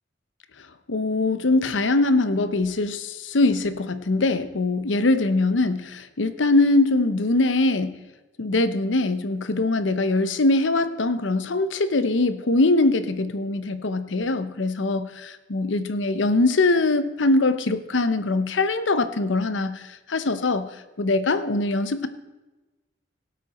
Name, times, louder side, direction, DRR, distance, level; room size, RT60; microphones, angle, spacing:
voice 1, 0.9-7.9 8.4-19.8 20.1-20.7 21.0-22.1, left 2 dB, 80° left, 12 dB, 0.8 m, -22 dB
17.5 x 8.3 x 4.2 m, 1.1 s
head